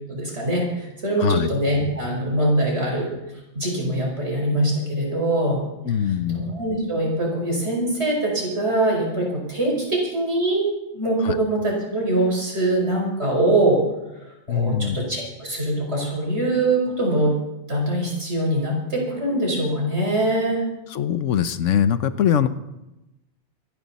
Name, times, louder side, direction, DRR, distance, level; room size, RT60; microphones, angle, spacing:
voice 1, 0.1-3.1 3.5-5.6 6.3-10.7 10.9-13.8 14.5-17.4 17.7-20.6, right 1 dB, 60° right, -2 dB, 5.6 m, -23 dB
voice 2, 5.8-6.4 11.2-11.4 14.5-15.0 20.9-22.5, left 8 dB, 85° left, 13 dB, 1.1 m, -22 dB
25.5 x 10.5 x 4.2 m, 0.95 s
omnidirectional pair, 1.3 m